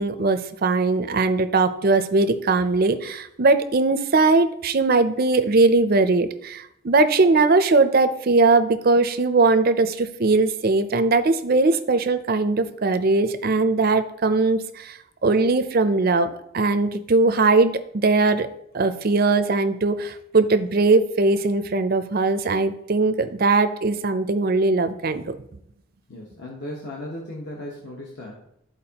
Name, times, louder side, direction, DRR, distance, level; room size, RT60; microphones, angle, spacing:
voice 1, 0.0-18.5 18.7-25.4, right 3 dB, 45° right, 10 dB, 0.5 m, -20 dB
voice 2, 26.1-28.4, left 1 dB, 50° left, -3 dB, 1.1 m, -36 dB
12.5 x 4.6 x 2.9 m, 0.76 s
head